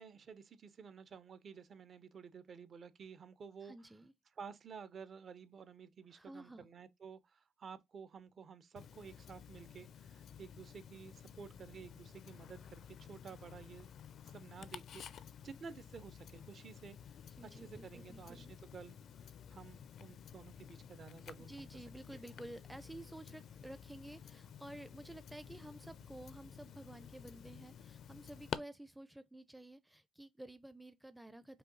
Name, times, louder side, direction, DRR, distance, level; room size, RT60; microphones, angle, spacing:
voice 1, 0.0-3.7 4.4-13.9 14.2-17.0 17.4-21.8, right 6 dB, 50° right, 0.6 m, -53 dB
voice 2, 3.6-4.1 6.1-6.6 17.4-18.5 21.4-31.6, right 1 dB, 5° right, 0.4 m, -52 dB
Tick-tock, 8.8-28.6, left 8 dB, 65° left, 0.4 m, -52 dB
5.5 x 2.3 x 3.8 m
cardioid pair, 90°, 0 cm